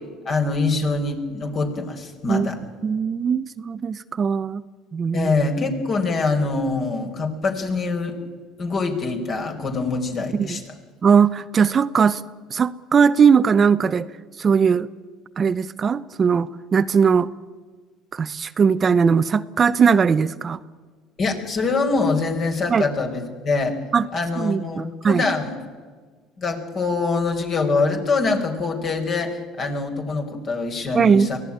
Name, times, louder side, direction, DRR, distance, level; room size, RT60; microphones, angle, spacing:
voice 1, 0.2-2.6 5.1-8.1 8.6-10.6 21.2-23.8 24.1-25.6 26.4-31.4, left 3 dB, 45° left, 4 dB, 4.8 m, -24 dB
voice 2, 2.8-4.6 4.9-5.3 10.3-10.6 11.0-12.2 12.5-14.1 14.4-14.9 15.4-17.3 18.1-20.6 22.7-22.8 23.9-24.1 24.4-25.3 30.9-31.3, right 6 dB, 35° right, 13 dB, 0.7 m, -19 dB
23.5 x 16.5 x 9.9 m, 1.5 s
supercardioid pair, 95°, 0 cm